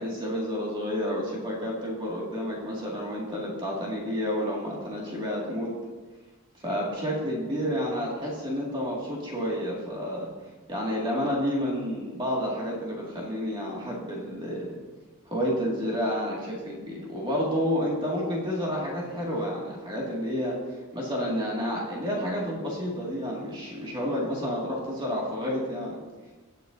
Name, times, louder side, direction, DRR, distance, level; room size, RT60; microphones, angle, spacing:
voice 1, 0.0-5.7 6.6-10.3 10.7-14.8 15.3-20.6 20.9-26.0, equal, 20° right, -4 dB, 2.1 m, -30 dB
19.0 x 6.7 x 2.7 m, 1.3 s
head